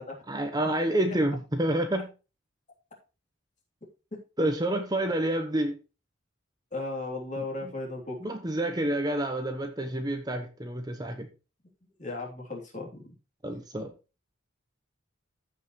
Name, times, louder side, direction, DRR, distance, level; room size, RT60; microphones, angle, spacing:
voice 1, 0.3-2.1 4.4-5.8 7.4-7.7 8.2-11.3 13.4-13.9, right 1 dB, 20° right, 6 dB, 0.9 m, -29 dB
voice 2, 6.7-8.2 12.0-13.1, left 2 dB, 35° left, 0 dB, 3.1 m, -36 dB
14.5 x 5.5 x 3.1 m, 0.31 s
head